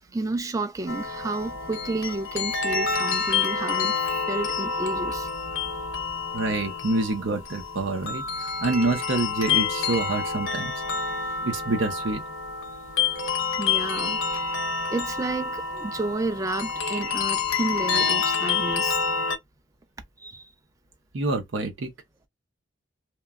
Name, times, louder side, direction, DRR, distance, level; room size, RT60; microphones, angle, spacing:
voice 1, 0.1-5.3 13.6-14.2 14.5-19.0 20.2-20.5, right 2 dB, 15° right, 0.3 m, -31 dB
sound 1, 0.9-19.4, left 5 dB, 85° left, 0.6 m, -28 dB
voice 2, 6.3-8.2 8.6-10.7 11.4-12.2 21.1-21.9, right 3 dB, 85° right, 0.6 m, -26 dB
2.9 x 2.2 x 2.3 m
head